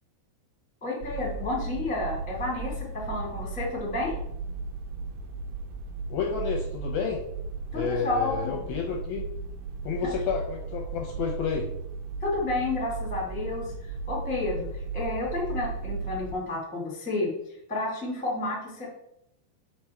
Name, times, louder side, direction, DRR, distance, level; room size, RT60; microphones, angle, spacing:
voice 1, 0.8-4.2 7.7-8.7 10.0-10.1 12.2-17.3 17.7-18.9, left 2 dB, 5° left, -4 dB, 1.4 m, -31 dB
sound 1, 1.0-16.3, right 4 dB, 80° right, 2.0 m, -36 dB
voice 2, 6.1-7.2 7.7-9.3 9.8-11.7, left 6 dB, 75° left, 1 dB, 2.4 m, -30 dB
7.2 x 6.1 x 4.6 m, 0.78 s
omnidirectional pair, 5.2 m